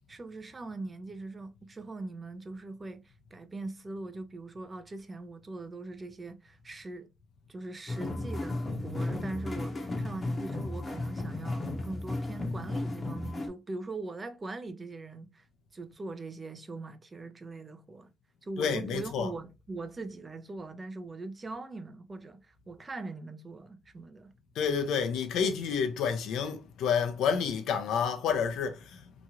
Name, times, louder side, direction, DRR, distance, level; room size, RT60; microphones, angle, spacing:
voice 1, 0.1-7.1 7.5-15.5 15.7-18.1 18.4-24.4, right 2 dB, 30° right, 0.5 m, -41 dB
sound 1, 7.9-13.5, left 2 dB, 30° left, 0.8 m, -34 dB
voice 2, 18.6-19.3 24.6-29.0, left 6 dB, 85° left, 0.6 m, -29 dB
2.9 x 2.4 x 2.8 m
cardioid pair, 90°, 0 cm